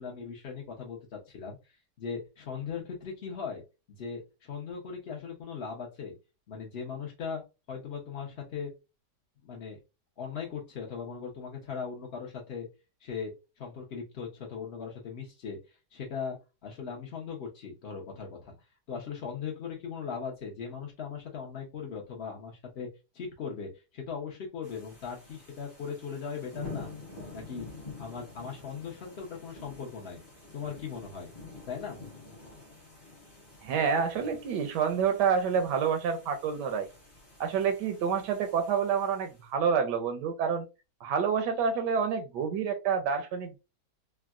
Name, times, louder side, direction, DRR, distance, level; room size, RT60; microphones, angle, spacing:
voice 1, 0.0-3.6 3.9-6.2 6.5-7.4 7.7-8.7 9.4-9.8 10.2-12.7 13.0-16.4 16.6-22.9 23.1-26.9 27.3-27.7 28.0-30.2 30.5-31.3 31.7-32.0, left 6 dB, 55° left, 0.7 m, -39 dB
sound 1, 24.6-39.4, left 3 dB, 25° left, 0.5 m, -48 dB
voice 2, 33.6-36.9 37.4-40.7 41.0-43.6, right 6 dB, 80° right, 1.2 m, -28 dB
3.5 x 2.1 x 2.3 m
omnidirectional pair, 1.8 m